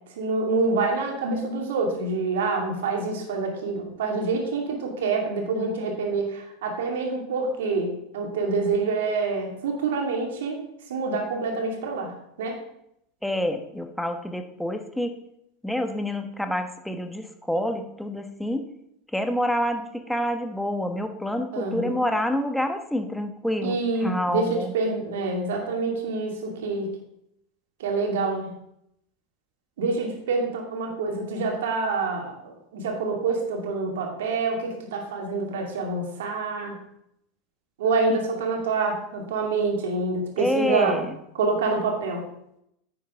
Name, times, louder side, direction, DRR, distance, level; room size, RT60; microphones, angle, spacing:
voice 1, 0.2-10.6 10.9-12.6 21.5-22.0 23.6-26.9 27.8-28.5 29.8-36.7 37.8-41.0 41.3-42.2, right 3 dB, 70° right, 1 dB, 2.4 m, -27 dB
voice 2, 13.2-15.2 15.6-18.6 19.1-24.7 38.1-38.2 40.4-41.2, equal, 5° left, 6 dB, 1.2 m, -27 dB
10.0 x 7.8 x 3.7 m, 0.78 s
hypercardioid pair, 85°, 0 cm